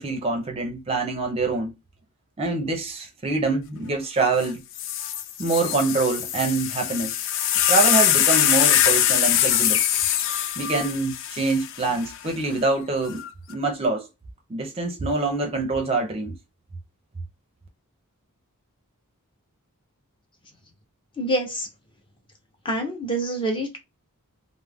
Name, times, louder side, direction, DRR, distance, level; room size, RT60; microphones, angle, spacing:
voice 1, 0.0-1.7 2.4-4.6 5.4-7.2 7.7-9.8 10.6-13.2 13.5-14.1 14.5-16.4, right 3 dB, 25° right, 0.5 m, -25 dB
sound 1, 4.4-4.5 4.8-12.2 13.1-13.5, left 10 dB, 60° left, 0.3 m, -22 dB
voice 2, 21.2-21.7 22.6-23.8, right 1 dB, 25° left, 0.6 m, -26 dB
2.3 x 2.0 x 3.3 m
head